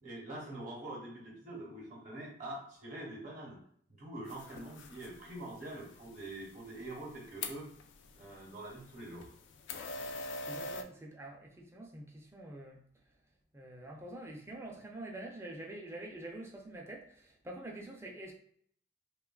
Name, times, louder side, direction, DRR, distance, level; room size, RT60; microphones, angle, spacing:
voice 1, 0.0-3.6 3.9-7.7 8.1-9.3, right 1 dB, 45° right, -3 dB, 0.8 m, -45 dB
sound 1, 4.3-10.8, left 2 dB, 80° left, 0.3 m, -45 dB
voice 2, 10.5-12.8 13.5-18.3, right 1 dB, 15° right, 0 dB, 0.3 m, -46 dB
3.0 x 2.2 x 2.2 m, 0.62 s
head